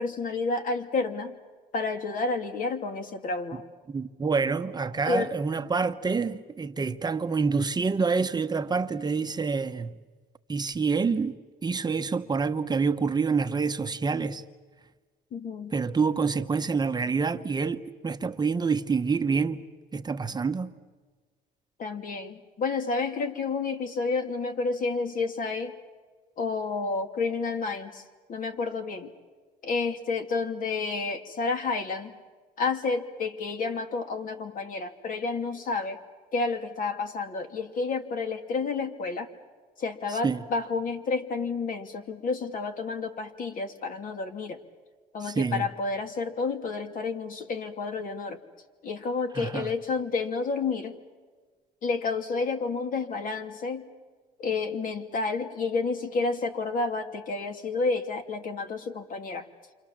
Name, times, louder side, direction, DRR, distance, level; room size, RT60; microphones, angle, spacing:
voice 1, 0.0-1.3 1.7-3.6 5.1-5.3 11.1-11.2 15.3-15.8 21.8-25.7 26.4-28.0 28.3-29.1 29.6-32.2 32.6-36.0 36.3-39.3 39.8-44.6 45.1-48.4 48.8-51.0 51.8-53.9 54.4-59.5, left 4 dB, 55° left, 2.7 m, -30 dB
voice 2, 3.9-9.9 10.5-14.4 15.7-19.6 19.9-20.7 40.1-40.4 45.2-45.7 49.3-49.7, right 5 dB, 25° right, 1.0 m, -27 dB
29.0 x 26.0 x 7.4 m
cardioid pair, 110°, 17 cm